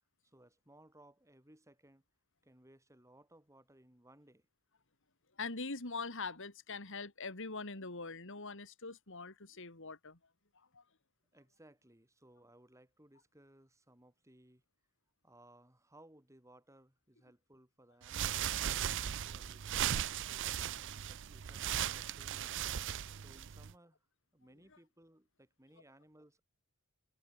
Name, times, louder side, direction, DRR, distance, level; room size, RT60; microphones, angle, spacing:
voice 1, 0.2-2.0 2.4-4.5 11.3-14.6 15.2-19.7 20.3-22.6 23.2-24.1 24.3-26.4, right 1 dB, 15° right, 6.4 m, -62 dB
voice 2, 5.4-10.2 10.5-10.8, left 3 dB, 60° left, 3.3 m, -43 dB
sound 1, 18.0-23.7, right 10 dB, 55° right, 0.5 m, -37 dB
head